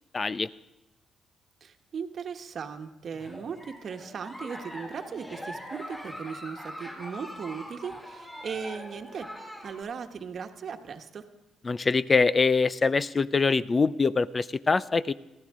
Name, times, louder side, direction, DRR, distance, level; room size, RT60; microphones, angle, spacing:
voice 1, 0.1-0.5 11.6-15.1, left 4 dB, 35° left, 17 dB, 0.5 m, -24 dB
voice 2, 1.6-9.3 9.6-11.2, right 6 dB, 55° right, 6 dB, 1.2 m, -38 dB
Giggle, 3.1-9.8, equal, 10° left, 5.6 m, -42 dB
22.5 x 14.0 x 3.7 m, 1.0 s
supercardioid pair, 65°, 0 cm